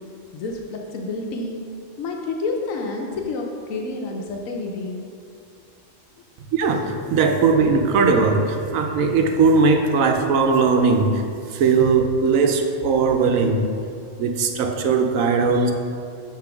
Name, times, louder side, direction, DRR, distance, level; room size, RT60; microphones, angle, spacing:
voice 1, 0.3-1.6 2.0-5.1, left 3 dB, 85° left, 1 dB, 1.0 m, -29 dB
voice 2, 6.5-11.2 11.5-13.6 14.2-15.7, right 4 dB, 90° right, 5 dB, 1.0 m, -19 dB
6.8 x 3.0 x 5.8 m, 2.5 s
omnidirectional pair, 1.4 m